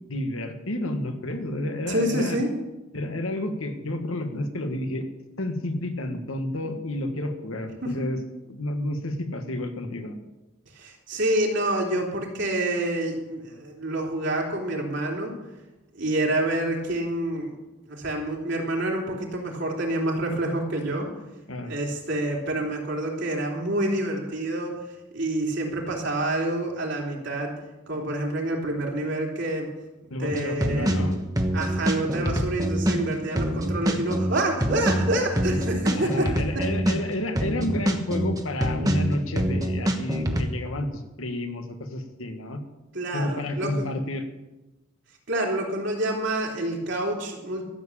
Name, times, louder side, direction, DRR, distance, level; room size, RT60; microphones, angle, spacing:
voice 1, 0.1-2.4 2.9-5.1 5.4-8.2 8.5-10.1 21.5-21.7 30.1-31.2 36.0-42.6 43.1-44.3, left 1 dB, 80° left, 6 dB, 1.8 m, -30 dB
voice 2, 1.9-2.5 7.8-8.1 10.7-15.4 15.9-17.5 17.8-21.1 21.7-24.9 25.1-27.5 27.9-29.7 30.2-31.0 31.5-36.6 42.9-43.9 45.3-47.6, right 1 dB, 60° right, 0 dB, 3.2 m, -27 dB
sound 1, 30.3-40.4, right 1 dB, 20° right, 1.2 m, -25 dB
13.5 x 7.5 x 8.6 m, 1.0 s
head